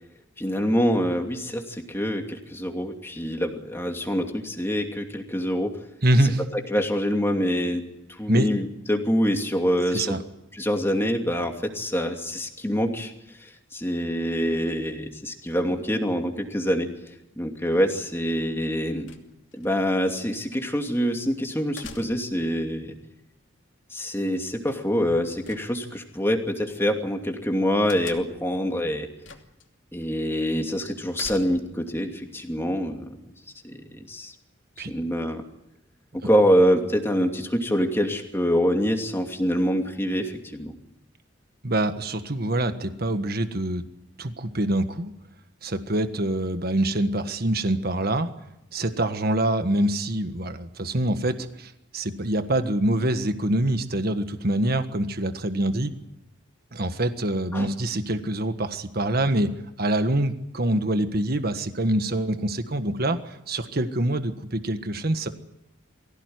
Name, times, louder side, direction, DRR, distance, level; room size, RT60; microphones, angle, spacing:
voice 1, 0.4-5.8 6.5-7.8 8.2-10.2 10.5-13.1 13.4-16.9 17.4-19.1 19.6-23.0 23.9-29.1 29.9-33.2 33.7-34.3 34.9-35.4 36.1-40.8 57.5-57.7, equal, 10° left, 3 dB, 2.7 m, -25 dB
voice 2, 6.0-6.4 8.3-8.5 9.9-10.2 34.8-34.9 41.6-43.8 44.2-45.1 45.6-48.3 48.7-55.9 56.7-59.5 59.8-65.3, right 1 dB, 50° right, 9 dB, 1.5 m, -25 dB
sound 1, 19.1-19.7 21.8-22.5 25.4-26.2 27.9-28.5 29.2-29.7 30.0-30.1 31.1-31.9, left 5 dB, 70° left, 2.7 m, -43 dB
23.5 x 16.5 x 9.6 m, 0.88 s
head